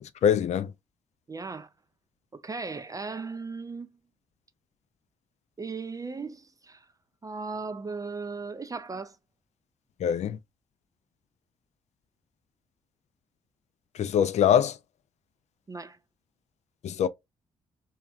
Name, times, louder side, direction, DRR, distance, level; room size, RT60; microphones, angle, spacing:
voice 1, 0.0-0.7 10.0-10.4 13.9-14.8 16.8-17.1, left 9 dB, 50° left, 0.4 m, -24 dB
voice 2, 1.3-1.7 2.3-3.9 5.6-6.9 7.2-9.2 15.7-16.0, right 4 dB, 25° right, 0.4 m, -37 dB
3.0 x 2.2 x 2.4 m
hypercardioid pair, 45°, 15 cm